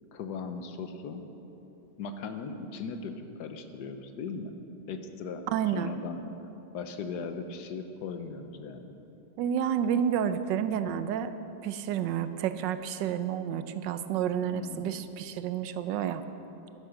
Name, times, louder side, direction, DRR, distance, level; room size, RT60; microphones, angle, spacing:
voice 1, 0.1-1.3 2.0-4.5 4.9-6.2 6.7-8.9 14.5-15.0, left 5 dB, 70° left, 7 dB, 1.3 m, -38 dB
voice 2, 5.5-5.9 9.4-11.4 11.6-16.2, right 9 dB, 85° right, 11 dB, 1.3 m, -30 dB
11.5 x 10.5 x 6.4 m, 3.0 s
omnidirectional pair, 1.9 m